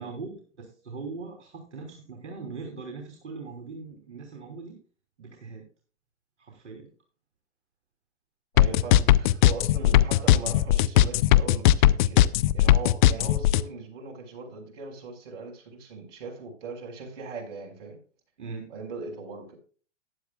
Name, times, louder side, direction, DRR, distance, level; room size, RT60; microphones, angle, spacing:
voice 1, 0.0-4.8 5.2-5.6 6.4-6.9 18.4-18.7, right 4 dB, 70° right, 3.2 m, -40 dB
voice 2, 8.5-18.0 18.7-19.6, right 4 dB, 55° right, 4.8 m, -39 dB
sound 1, 8.6-13.6, left 14 dB, 40° left, 0.5 m, -18 dB
15.0 x 10.0 x 2.3 m
hypercardioid pair, 115°, 36 cm